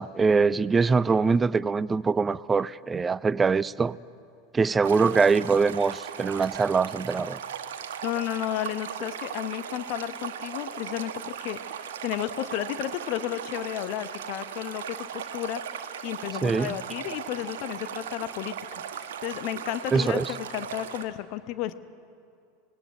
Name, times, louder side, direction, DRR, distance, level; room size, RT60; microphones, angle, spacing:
voice 1, 0.0-4.0 4.5-7.4 16.4-16.8 19.9-20.3, right 4 dB, 20° right, 19 dB, 0.5 m, -23 dB
Stream, 4.8-21.0, right 8 dB, 65° right, 1.1 m, -38 dB
voice 2, 8.0-21.7, left 13 dB, 50° left, 12 dB, 0.8 m, -33 dB
18.5 x 17.0 x 9.3 m, 2.4 s
figure-of-eight pair, 80°, 0 cm